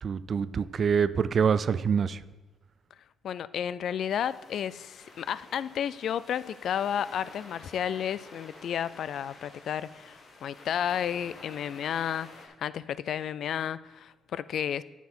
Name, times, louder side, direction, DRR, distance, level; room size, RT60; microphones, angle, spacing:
voice 1, 0.0-2.2, right 6 dB, 50° right, 16 dB, 0.3 m, -25 dB
voice 2, 3.2-14.8, left 9 dB, 65° left, 18 dB, 0.3 m, -32 dB
sound 1, 4.1-12.5, left 3 dB, 50° left, 1.5 m, -51 dB
9.3 x 7.1 x 4.3 m, 1.2 s
cardioid pair, 90°, 0 cm